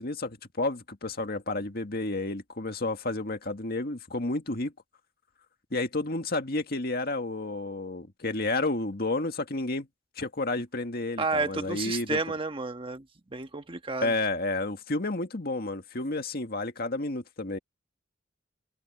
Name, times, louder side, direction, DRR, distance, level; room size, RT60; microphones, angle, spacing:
voice 1, 0.0-4.7 5.7-9.9 10.2-12.2 14.0-17.6, left 2 dB, 55° left, 1.9 m, -31 dB
voice 2, 11.2-13.0 13.3-14.1, right 3 dB, 30° right, 1.4 m, -31 dB
head